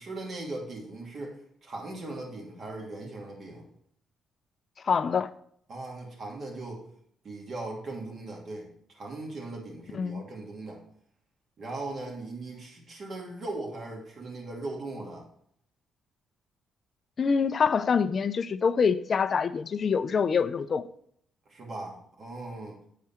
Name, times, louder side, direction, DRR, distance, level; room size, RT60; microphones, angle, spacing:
voice 1, 0.0-3.7 5.7-6.8 7.2-10.8 11.6-15.2 21.5-22.8, right 2 dB, 50° right, -1 dB, 2.5 m, -39 dB
voice 2, 4.8-5.3 9.9-10.2 17.2-20.9, left 6 dB, 45° left, 12 dB, 0.5 m, -25 dB
9.3 x 4.8 x 4.3 m, 0.65 s
cardioid pair, 90°, 0 cm